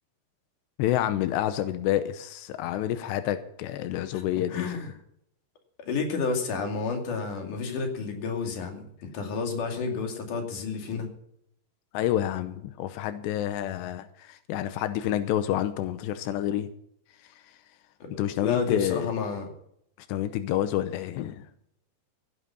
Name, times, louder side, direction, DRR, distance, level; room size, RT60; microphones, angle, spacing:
voice 1, 0.8-4.7 11.9-16.7 18.2-19.1 20.0-21.5, left 12 dB, 90° left, 11 dB, 3.0 m, -28 dB
voice 2, 4.5-4.9 5.9-11.1 18.0-19.5, left 4 dB, 50° left, 3 dB, 3.7 m, -31 dB
17.0 x 9.2 x 5.7 m, 0.72 s
omnidirectional pair, 4.9 m